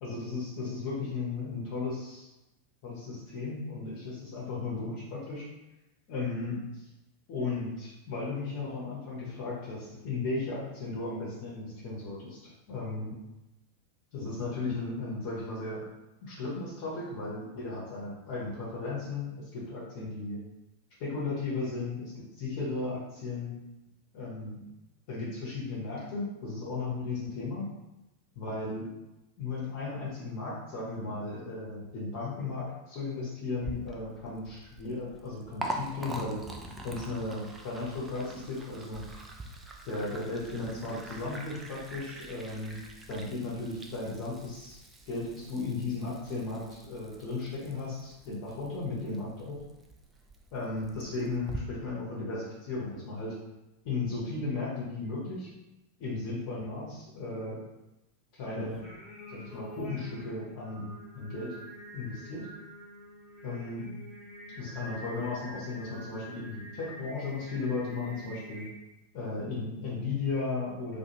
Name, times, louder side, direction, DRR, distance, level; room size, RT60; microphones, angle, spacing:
voice 1, 0.0-2.3 2.8-5.5 6.1-6.6 7.3-13.1 14.1-15.8 16.2-20.4 21.0-23.5 24.1-24.6 25.1-27.7 28.3-28.9 29.4-36.4 36.8-39.0 39.9-42.8 43.1-44.8 45.1-49.6 50.5-53.3 53.8-55.5 56.0-57.6 58.3-58.8 59.3-61.5 61.9-62.5 63.4-63.9 64.6-68.7 69.1-71.0, left 3 dB, 45° left, -6 dB, 0.8 m, -35 dB
Liquid, 33.6-51.6, right 1 dB, 15° right, 0.3 m, -44 dB
Singing, 58.7-68.7, left 1 dB, ahead, 1.0 m, -46 dB
2.4 x 2.3 x 3.0 m, 0.96 s
figure-of-eight pair, 90°, 0 cm